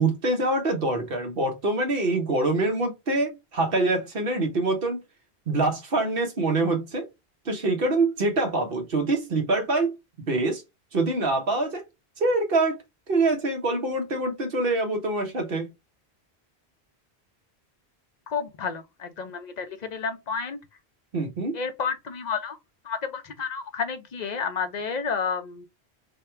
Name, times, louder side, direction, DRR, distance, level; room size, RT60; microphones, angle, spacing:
voice 1, 0.0-5.0 5.5-7.1 7.4-9.9 10.3-10.6 10.9-11.8 12.2-12.8 13.1-15.7 21.1-21.6, right 2 dB, 60° right, 1.2 m, -25 dB
voice 2, 18.3-20.6 21.5-22.6 22.8-25.7, left 5 dB, 45° left, 0.7 m, -31 dB
3.5 x 2.2 x 4.3 m
omnidirectional pair, 1.1 m